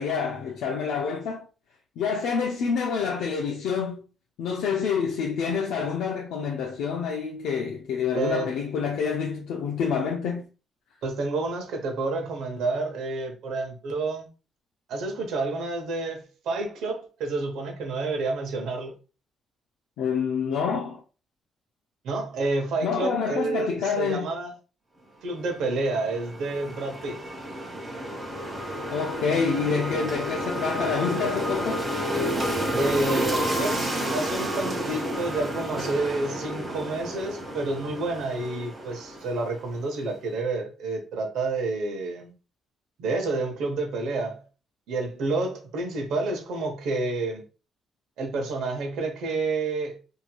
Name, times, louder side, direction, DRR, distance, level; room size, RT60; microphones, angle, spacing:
voice 1, 0.0-1.5 2.0-4.0 4.4-10.5 20.0-21.0 22.8-24.3 28.9-31.9, left 6 dB, 85° left, 0.4 m, -27 dB
voice 2, 8.1-8.5 11.0-14.3 14.9-18.9 22.0-24.5 25.2-27.2 32.8-42.3 43.0-44.4 44.9-47.4 48.2-50.0, right 3 dB, 80° right, 0.8 m, -29 dB
sound 1, 25.5-39.8, equal, 20° right, 1.1 m, -30 dB
2.9 x 2.7 x 2.2 m
cardioid pair, 90°, 0 cm